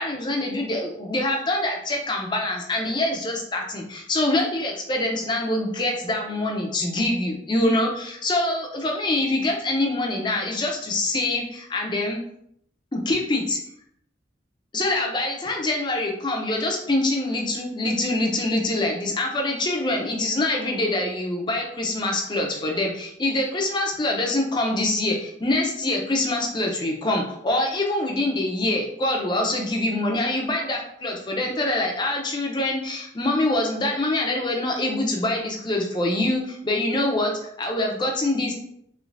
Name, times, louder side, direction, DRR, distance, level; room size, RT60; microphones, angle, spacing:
voice 1, 0.0-12.2 12.9-13.6 14.7-38.5, left 1 dB, 25° left, 1 dB, 0.5 m, -25 dB
3.2 x 3.0 x 2.5 m, 0.71 s
head